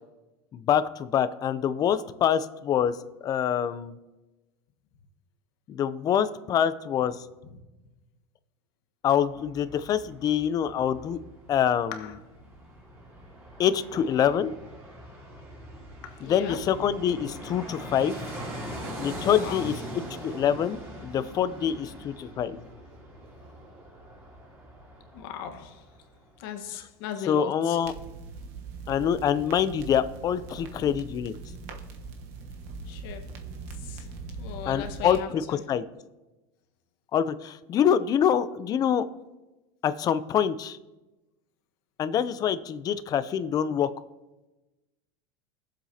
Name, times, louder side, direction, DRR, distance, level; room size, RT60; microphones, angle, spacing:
voice 1, 0.5-3.9 5.7-7.2 9.0-11.2 11.5-12.1 13.6-14.5 16.2-18.4 19.0-22.6 27.3-27.9 28.9-31.3 34.7-35.8 37.1-39.1 39.8-40.8 42.0-43.9, left 9 dB, 30° left, 0.5 m, -25 dB
Fixed-wing aircraft airplane, 9.2-26.2 26.5-26.6, equal, 20° right, 3.0 m, -42 dB
voice 2, 16.2-16.6 19.4-19.7 25.1-25.8 26.4-27.8 32.9-33.3 33.8-34.1 34.4-35.6, left 9 dB, 65° left, 1.4 m, -38 dB
sound 1, 27.8-35.2, right 4 dB, 60° right, 1.2 m, -41 dB
20.5 x 7.6 x 2.8 m
supercardioid pair, 140°, 13 cm